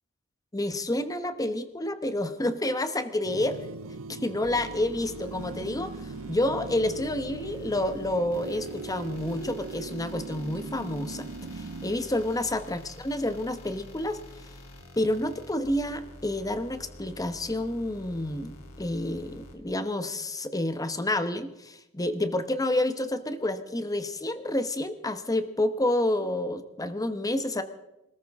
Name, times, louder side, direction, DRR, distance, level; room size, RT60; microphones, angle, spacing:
voice 1, 0.5-3.6 4.1-11.3 11.6-14.2 15.0-27.6, left 1 dB, 15° left, 10 dB, 1.0 m, -29 dB
sound 1, 3.2-11.9, right 4 dB, 65° right, 0.6 m, -40 dB
sound 2, 4.4-19.5, left 1 dB, 90° left, 3.2 m, -47 dB
25.5 x 14.0 x 3.6 m, 0.93 s
head